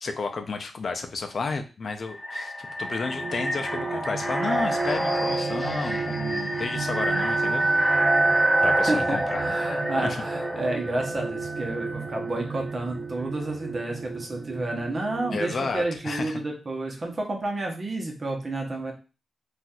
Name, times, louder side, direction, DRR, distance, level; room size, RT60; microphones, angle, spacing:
voice 1, 0.0-7.7 8.6-9.6 10.0-10.2 15.3-16.4, left 4 dB, 55° left, 5 dB, 0.4 m, -32 dB
sound 1, 1.9-12.7, right 1 dB, 10° right, 0.6 m, -27 dB
sound 2, 2.9-15.7, right 5 dB, 60° right, 0.5 m, -35 dB
voice 2, 8.9-18.9, right 2 dB, 40° right, 1 dB, 0.9 m, -30 dB
4.0 x 2.5 x 2.3 m, 0.33 s
cardioid pair, 80°, 0 cm